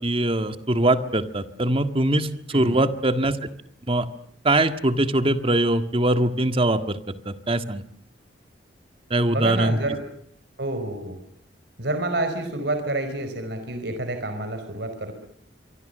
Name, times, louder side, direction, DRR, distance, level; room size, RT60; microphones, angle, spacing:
voice 1, 0.0-3.5 3.9-4.1 4.4-7.0 7.3-7.8 9.1-9.8, right 1 dB, 30° right, 9 dB, 1.8 m, -22 dB
voice 2, 2.5-2.8 9.3-10.0 10.6-11.2 11.8-15.1, right 2 dB, 65° right, 7 dB, 4.7 m, -28 dB
25.5 x 24.5 x 6.7 m, 0.67 s
head